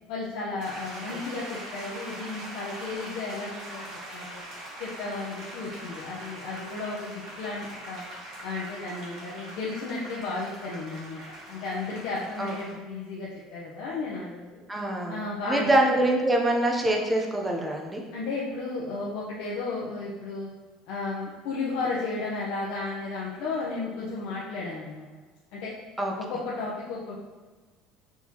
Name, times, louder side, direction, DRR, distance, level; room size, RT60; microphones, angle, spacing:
voice 1, 0.1-3.9 4.1-4.4 4.8-8.0 8.4-11.2 11.5-14.6 15.1-15.7 18.1-20.5 20.9-25.1 25.5-25.7 26.2-27.3, left 3 dB, 70° left, -6 dB, 0.7 m, -34 dB
sound 1, 0.6-12.7, right 1 dB, 60° right, 1.4 m, -42 dB
voice 2, 14.7-18.0 26.0-26.1, right 1 dB, 10° right, 0 dB, 0.6 m, -25 dB
4.4 x 3.5 x 2.8 m, 1.3 s
cardioid pair, 130°, 0 cm